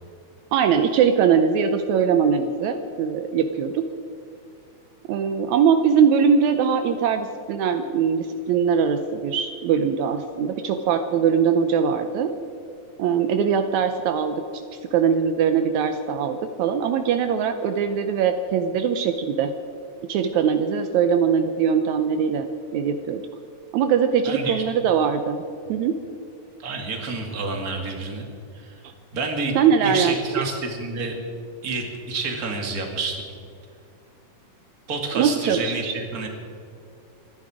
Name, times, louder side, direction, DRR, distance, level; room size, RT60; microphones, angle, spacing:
voice 1, 0.5-3.8 5.1-12.3 13.0-14.4 14.9-19.5 20.1-22.5 22.7-23.2 23.7-25.4 25.7-25.9 29.6-30.4 35.2-36.0, right 7 dB, 75° right, 8 dB, 2.0 m, -21 dB
voice 2, 24.3-24.6 26.6-28.3 28.5-28.7 29.1-29.6 29.8-31.1 31.6-33.2 34.9-36.3, right 3 dB, 30° right, 3 dB, 2.3 m, -29 dB
26.5 x 10.5 x 4.9 m, 2.5 s
omnidirectional pair, 3.4 m